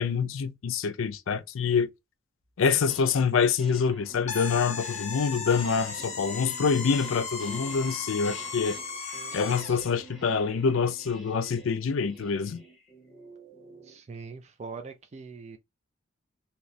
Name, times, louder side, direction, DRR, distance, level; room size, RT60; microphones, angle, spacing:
voice 1, 0.0-1.9 2.6-8.8 9.3-12.6, left 5 dB, 70° left, 0.4 m, -26 dB
sound 1, 2.9-3.3 3.6-14.0, right 1 dB, ahead, 1.2 m, -49 dB
sound 2, 4.3-9.8, left 5 dB, 35° left, 0.7 m, -36 dB
voice 2, 13.8-15.6, right 4 dB, 30° right, 0.4 m, -42 dB
3.1 x 2.8 x 2.6 m
head